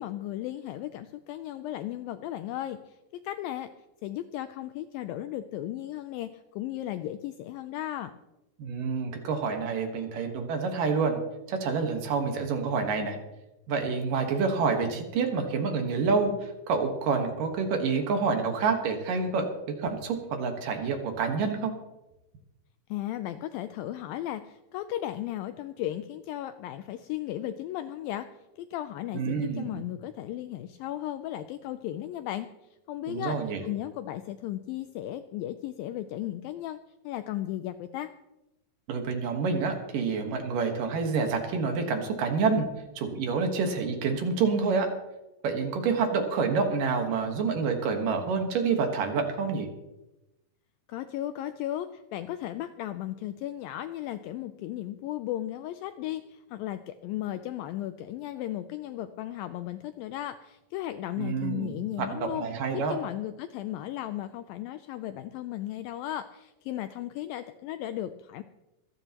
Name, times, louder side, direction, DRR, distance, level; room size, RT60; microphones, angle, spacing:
voice 1, 0.0-3.0 3.2-3.7 4.0-8.1 22.9-28.3 28.6-32.5 32.9-33.4 33.7-36.8 37.0-38.1 50.9-62.5 62.7-68.4, left 13 dB, 85° left, 10 dB, 2.1 m, -35 dB
voice 2, 8.6-11.2 11.5-13.2 13.7-19.5 19.8-21.7 29.1-29.8 33.1-33.6 38.9-42.7 43.0-44.9 45.4-49.7 61.2-63.0, right 5 dB, 65° right, 4 dB, 2.8 m, -28 dB
26.0 x 10.0 x 2.9 m, 0.97 s
omnidirectional pair, 4.5 m